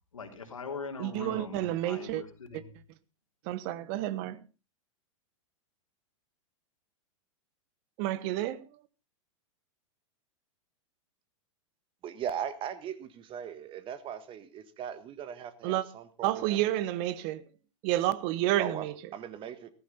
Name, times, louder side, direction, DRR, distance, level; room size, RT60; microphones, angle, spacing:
voice 1, 0.1-2.7, left 4 dB, 90° left, 3.4 m, -41 dB
voice 2, 1.0-2.2 3.5-4.4 8.0-8.6 15.6-15.8 16.2-17.4 17.8-18.9, right 14 dB, 45° right, 1.0 m, -30 dB
voice 3, 12.0-16.7 18.6-18.9 19.1-19.7, right 9 dB, 30° right, 1.6 m, -39 dB
15.0 x 14.5 x 4.1 m
hypercardioid pair, 105°, 17 cm